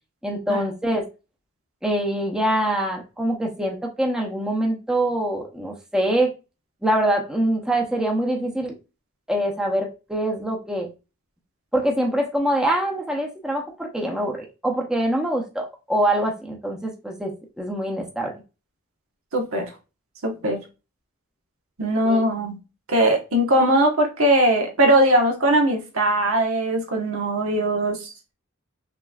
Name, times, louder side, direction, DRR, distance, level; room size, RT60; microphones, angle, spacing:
voice 1, 0.2-1.0 1.8-6.3 6.8-8.7 9.3-10.9 11.7-17.3 17.6-18.3 22.0-22.2, right 1 dB, 5° right, 0.7 m, -24 dB
voice 2, 19.3-19.6 20.2-20.6 21.8-22.5 22.9-28.1, right 1 dB, 85° right, 1.3 m, -20 dB
5.9 x 3.0 x 2.4 m
head